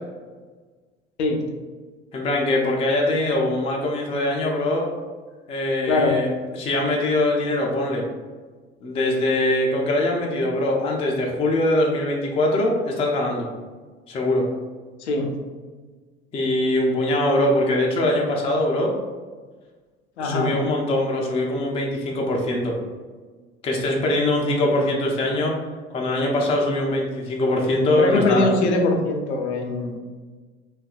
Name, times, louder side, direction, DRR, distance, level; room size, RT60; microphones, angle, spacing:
voice 1, 2.1-4.9 5.5-8.0 8.8-13.5 14.1-14.5 16.3-18.9 20.2-22.7 23.6-25.5 25.9-28.5, left 1 dB, 20° left, -1 dB, 0.3 m, -22 dB
voice 2, 20.2-20.5 28.0-30.0, left 2 dB, 80° left, 1 dB, 0.5 m, -22 dB
2.6 x 2.3 x 2.3 m, 1.4 s
figure-of-eight pair, 65°, 34 cm